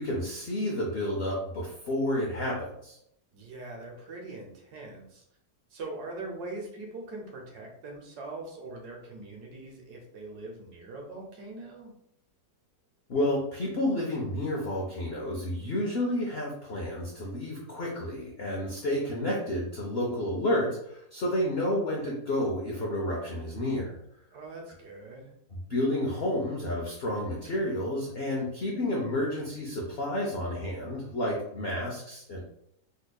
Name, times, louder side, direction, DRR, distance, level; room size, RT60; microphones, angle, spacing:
voice 1, 0.0-3.0 13.1-24.0 25.7-32.4, left 1 dB, 85° left, -2 dB, 0.5 m, -30 dB
voice 2, 3.3-5.2 5.7-11.9 24.3-25.3, right 2 dB, 65° right, 0 dB, 1.2 m, -42 dB
4.1 x 2.7 x 2.2 m, 0.73 s
omnidirectional pair, 1.9 m